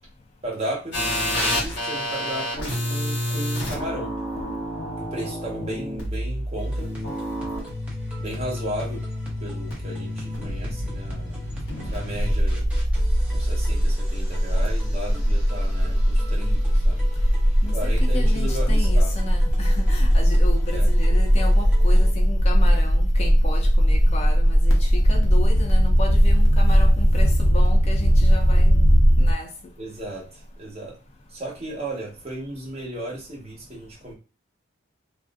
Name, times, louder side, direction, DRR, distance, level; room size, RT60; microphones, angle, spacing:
voice 1, 0.4-1.0 1.5-4.1 5.0-6.9 8.2-9.0 9.4-11.4 11.9-12.7 13.3-17.0 17.7-19.1 20.7-20.9 29.8-30.9 31.3-34.1, right 1 dB, 30° right, 1.1 m, -34 dB
sound 1, 0.9-13.8, equal, 55° left, 1.4 m, -29 dB
sound 2, 6.6-22.1, right 1 dB, 5° right, 0.7 m, -44 dB
sound 3, 12.2-29.3, equal, 75° left, 0.8 m, -18 dB
voice 2, 17.6-29.5, left 2 dB, 30° left, 0.3 m, -34 dB
3.1 x 2.5 x 2.4 m
head